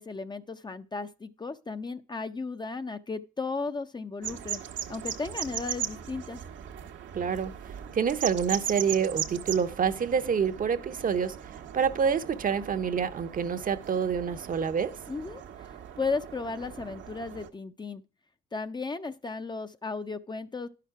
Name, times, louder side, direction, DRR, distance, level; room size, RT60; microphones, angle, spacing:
voice 1, 0.0-4.6 4.9-6.4 15.1-15.7 16.0-18.0 18.5-20.7, left 4 dB, 20° left, 0.5 m, -35 dB
sound 1, 4.2-17.5, right 10 dB, 75° right, 1.0 m, -39 dB
voice 2, 7.1-7.5 7.9-11.4 11.7-14.9, right 7 dB, 45° right, 0.7 m, -27 dB
11.0 x 5.9 x 4.6 m
cardioid pair, 90°, 20 cm